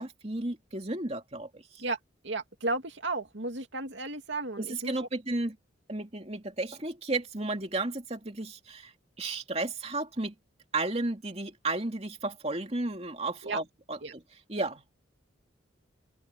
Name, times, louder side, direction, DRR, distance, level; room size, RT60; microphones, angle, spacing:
voice 1, 0.0-1.8 4.6-5.6 5.9-8.9 9.2-10.3 10.7-14.2 14.5-14.8, right 2 dB, 30° right, 2.7 m, -33 dB
voice 2, 2.2-5.1 13.4-13.6 14.0-14.1, right 2 dB, 70° right, 2.6 m, -34 dB
open air
head